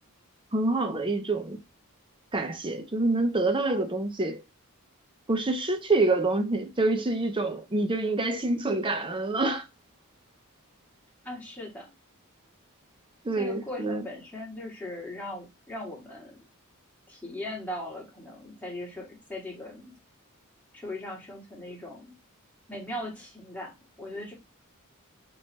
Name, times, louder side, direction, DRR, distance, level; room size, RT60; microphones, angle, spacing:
voice 1, 0.5-1.6 2.3-4.4 5.3-9.7 13.2-14.1, right 2 dB, 25° right, 0.6 m, -27 dB
voice 2, 11.2-11.9 13.4-16.4 17.1-20.0 20.7-22.1 22.7-24.3, left 1 dB, 5° left, 1.7 m, -39 dB
3.1 x 3.1 x 4.3 m
head